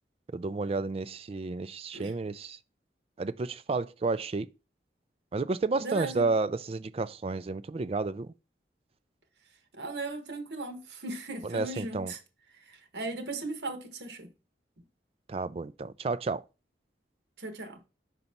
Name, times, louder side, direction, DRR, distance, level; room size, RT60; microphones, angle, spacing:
voice 1, 0.3-2.6 3.2-4.5 5.3-8.3 11.4-12.1 15.3-16.4, right 3 dB, 35° right, 0.3 m, -31 dB
voice 2, 5.8-6.3 9.7-12.2 12.7-14.3 17.4-17.8, right 2 dB, 65° right, 1.2 m, -37 dB
5.3 x 4.0 x 5.8 m
head